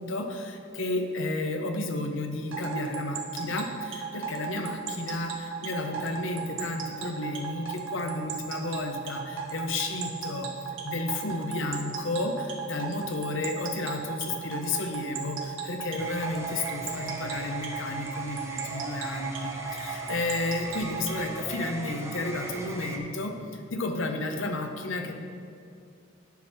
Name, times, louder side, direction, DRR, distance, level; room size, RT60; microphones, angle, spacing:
voice 1, 0.0-10.5 10.8-25.1, left 2 dB, 70° left, 5 dB, 0.8 m, -32 dB
sound 1, 2.5-21.3, right 7 dB, 80° right, 1.2 m, -35 dB
sound 2, 16.0-23.0, right 2 dB, 15° right, 0.8 m, -39 dB
9.4 x 4.5 x 5.8 m, 2.5 s
head